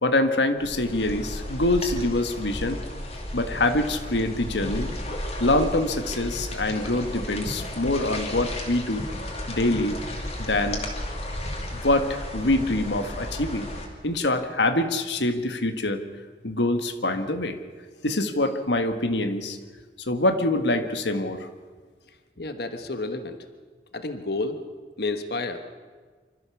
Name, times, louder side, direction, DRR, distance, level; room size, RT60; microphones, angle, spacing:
voice 1, 0.0-2.8 3.3-4.9 5.4-9.1 9.5-10.0 10.4-10.8 11.7-13.7 14.0-16.0 16.4-17.6 18.0-19.6 20.1-21.5, left 2 dB, 90° left, 8 dB, 1.5 m, -25 dB
sound 1, 0.6-13.9, left 1 dB, 35° left, 2.6 m, -34 dB
voice 2, 22.4-23.4 23.9-24.6 25.0-25.6, left 2 dB, 65° left, 8 dB, 1.3 m, -30 dB
26.0 x 14.0 x 7.2 m, 1.5 s
head